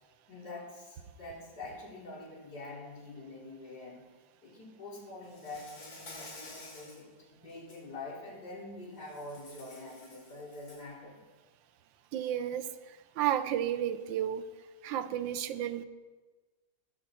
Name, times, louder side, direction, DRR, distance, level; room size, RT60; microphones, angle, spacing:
voice 1, 0.3-4.1 4.4-11.2, left 2 dB, 50° left, -8 dB, 4.8 m, -45 dB
Insect, 5.3-7.0 7.5-7.8 9.0-10.9, left 2 dB, 75° left, 3.7 m, -50 dB
voice 2, 12.1-12.7 13.2-14.5 14.8-15.9, right 10 dB, 80° right, 11 dB, 1.4 m, -32 dB
19.5 x 7.2 x 4.2 m, 1.3 s
omnidirectional pair, 2.1 m